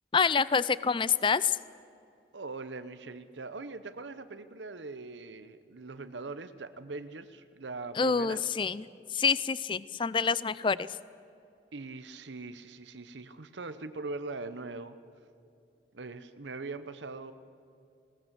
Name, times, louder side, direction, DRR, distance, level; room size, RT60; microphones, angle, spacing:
voice 1, 0.1-1.6 8.0-8.8 9.1-10.9, left 5 dB, 30° left, 18 dB, 0.4 m, -27 dB
voice 2, 2.3-8.4 11.7-15.0 15.9-17.3, right 3 dB, 85° right, 11 dB, 0.9 m, -41 dB
20.0 x 19.0 x 7.6 m, 2.6 s
head